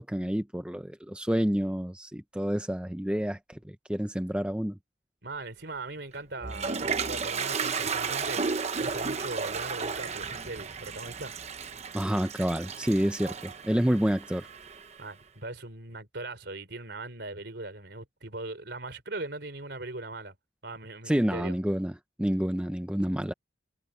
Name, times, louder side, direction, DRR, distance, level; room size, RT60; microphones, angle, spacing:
voice 1, 0.0-4.8 11.9-14.5 21.1-21.9 22.2-23.3, equal, 5° right, 0.5 m, -28 dB
voice 2, 5.2-6.8 7.1-8.4 8.8-11.3 15.0-20.3 20.6-21.5, right 2 dB, 65° right, 3.9 m, -39 dB
Toilet flush, 6.1-15.0, right 5 dB, 35° right, 0.9 m, -33 dB
head